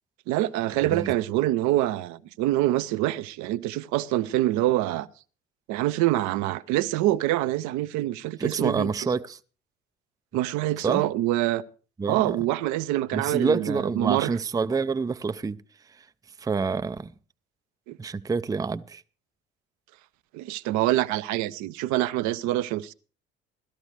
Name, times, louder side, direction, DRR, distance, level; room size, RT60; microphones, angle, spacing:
voice 1, 0.3-5.1 5.7-8.9 10.3-11.6 12.1-14.3 17.9-18.0 20.3-22.9, right 15 dB, 55° right, 0.7 m, -25 dB
voice 2, 8.4-9.4 10.8-11.0 12.0-12.4 13.1-15.6 16.0-16.1 16.4-17.1 18.0-19.0, right 4 dB, 10° right, 0.5 m, -27 dB
18.0 x 13.0 x 3.2 m
figure-of-eight pair, 60°, 33 cm